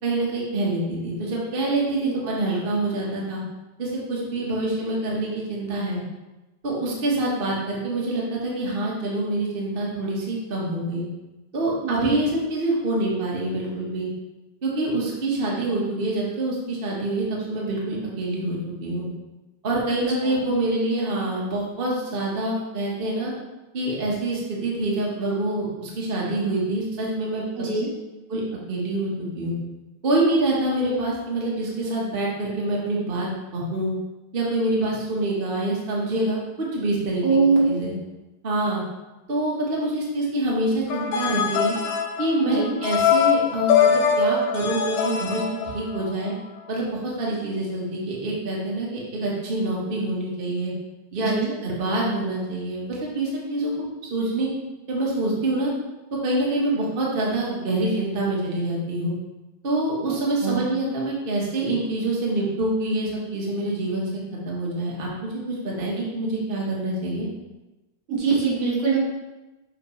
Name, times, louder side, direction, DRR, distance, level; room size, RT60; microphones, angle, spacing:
voice 1, 0.0-3.4 3.8-6.0 6.6-11.0 11.5-14.1 14.6-19.1 19.6-23.3 23.7-27.5 28.3-28.4 28.7-29.5 30.0-33.9 34.3-37.4 37.7-37.9 38.4-38.8 39.3-41.8 42.2-46.3 46.7-50.7 51.1-51.3 51.6-53.7 54.0-54.5 54.9-55.7 56.1-59.1 59.6-64.1 64.4-67.3, right 2 dB, 70° right, -4 dB, 0.5 m, -26 dB
voice 2, 11.8-12.2 20.2-20.5 27.6-27.9 37.2-37.7 42.4-42.8 51.2-51.5 60.4-60.7 68.1-69.0, right 4 dB, 55° right, -5 dB, 2.3 m, -23 dB
sound 1, 40.9-46.3, left 7 dB, 75° left, 1.9 m, -22 dB
6.4 x 6.0 x 3.2 m, 1.1 s
omnidirectional pair, 3.4 m